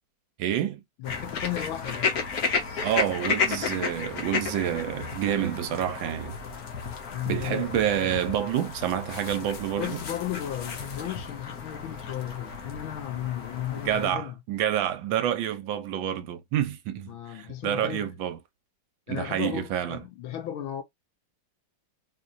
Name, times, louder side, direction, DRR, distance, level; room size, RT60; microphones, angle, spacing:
voice 1, 0.4-0.8 2.8-6.3 7.3-10.0 13.8-18.4 19.1-20.0, right 10 dB, 75° right, 1.3 m, -28 dB
voice 2, 1.0-2.2 7.1-8.0 9.8-14.3 17.1-18.1 19.1-20.8, left 12 dB, 80° left, 1.7 m, -35 dB
sound 1, 1.0-14.1, left 5 dB, 55° left, 1.3 m, -33 dB
4.2 x 2.9 x 2.5 m
omnidirectional pair, 2.2 m